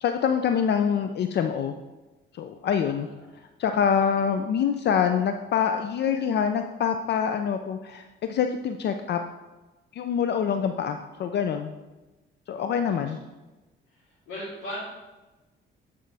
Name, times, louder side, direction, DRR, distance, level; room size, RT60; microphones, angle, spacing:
voice 1, 0.0-1.7 2.4-3.1 3.6-9.2 9.9-11.7 12.5-13.2, left 7 dB, 60° left, 7 dB, 0.5 m, -25 dB
voice 2, 3.8-4.2 12.9-13.1 13.9-14.8, equal, 75° left, -10 dB, 2.6 m, -40 dB
8.7 x 5.1 x 3.4 m, 1.1 s
cardioid pair, 90°, 20 cm